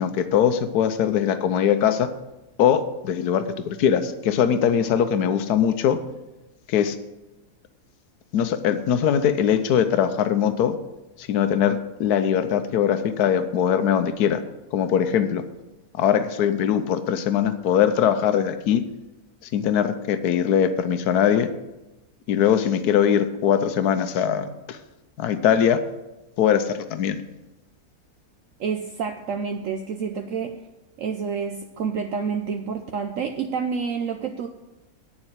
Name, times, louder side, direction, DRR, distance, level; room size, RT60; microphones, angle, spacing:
voice 1, 0.0-2.1 2.6-6.0 6.7-7.0 8.3-10.7 11.2-14.4 14.7-15.4 16.0-18.8 19.5-21.5 22.3-24.8 25.2-25.8 26.4-27.2, left 8 dB, 85° left, 10 dB, 1.3 m, -21 dB
voice 2, 28.6-30.6 31.0-34.5, right 6 dB, 65° right, 5 dB, 1.0 m, -28 dB
8.9 x 7.2 x 8.0 m, 1.0 s
omnidirectional pair, 1.6 m